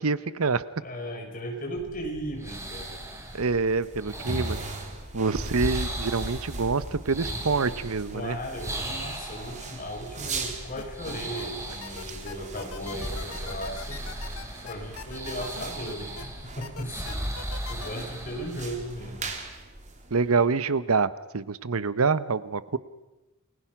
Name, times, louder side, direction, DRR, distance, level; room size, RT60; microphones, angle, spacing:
voice 1, 0.0-0.6 3.3-4.6 5.1-8.4 20.1-22.8, right 4 dB, 80° right, 16 dB, 0.9 m, -26 dB
voice 2, 0.8-3.0 8.1-14.0 14.6-16.3 16.6-17.2 17.7-19.4, equal, 40° left, 2 dB, 5.2 m, -36 dB
sound 1, 1.7-19.3, right 1 dB, 15° right, 3.8 m, -38 dB
sound 2, 2.8-20.6, right 3 dB, 35° right, 3.1 m, -41 dB
sound 3, 10.8-11.4 11.8-16.2 16.6-18.0, left 6 dB, 85° left, 1.4 m, -41 dB
29.5 x 21.0 x 6.0 m, 1.0 s
head